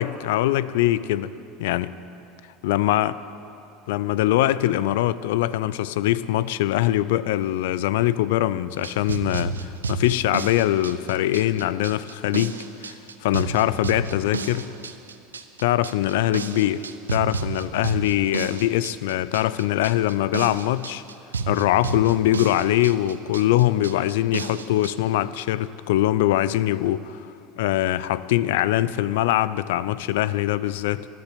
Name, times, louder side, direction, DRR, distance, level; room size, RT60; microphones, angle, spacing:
voice 1, 0.0-1.3 1.6-1.9 2.6-3.2 3.9-9.5 9.9-12.9 13.2-14.7 15.6-21.0 21.5-27.2 27.6-31.1, left 14 dB, 70° left, 0.4 m, -22 dB
sound 1, 8.8-24.9, right 4 dB, 85° right, 0.6 m, -32 dB
13.0 x 11.0 x 8.6 m
hypercardioid pair, 75°, 0 cm